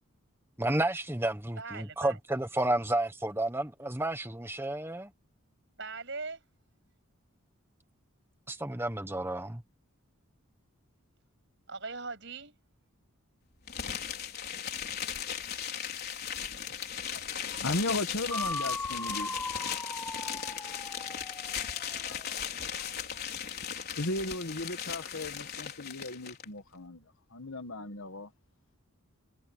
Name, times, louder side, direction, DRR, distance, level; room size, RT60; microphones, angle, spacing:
voice 1, 0.6-5.1 8.5-9.6, right 1 dB, 10° right, 1.3 m, -31 dB
voice 2, 1.6-2.2 5.8-6.4 11.7-12.5, right 4 dB, 55° right, 8.0 m, -40 dB
sound 1, 13.7-26.4, left 8 dB, 45° left, 4.7 m, -37 dB
voice 3, 17.0-19.4 21.3-23.2 23.5-23.6 23.9-28.3, left 2 dB, 65° left, 1.7 m, -37 dB
sound 2, 18.3-22.2, left 2 dB, 10° left, 0.6 m, -38 dB
head